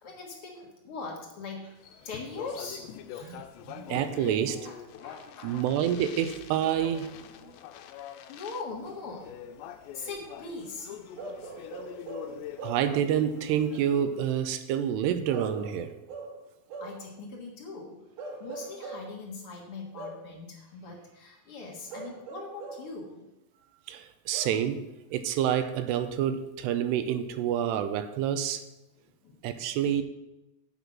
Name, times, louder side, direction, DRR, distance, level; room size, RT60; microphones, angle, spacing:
voice 1, 0.0-3.4 3.7-3.8 4.6-5.7 8.3-9.3 9.9-10.9 16.8-18.0 18.4-23.2 29.2-29.4, left 3 dB, 60° left, -1 dB, 1.5 m, -41 dB
Speech, 1.8-14.2, left 10 dB, 90° left, 2.9 m, -45 dB
voice 2, 3.7-4.7 5.4-7.1 12.6-16.0 23.9-24.9 25.1-28.6 29.4-30.0, right 9 dB, 80° right, 10 dB, 2.7 m, -28 dB
Bark / Livestock farm animals working animals, 11.2-13.0 15.3-17.1 18.2-19.2 20.0-20.4 21.9-23.0 24.3-24.7, right 3 dB, 65° right, 2.3 m, -41 dB
9.2 x 5.7 x 7.5 m, 0.95 s
omnidirectional pair, 5.0 m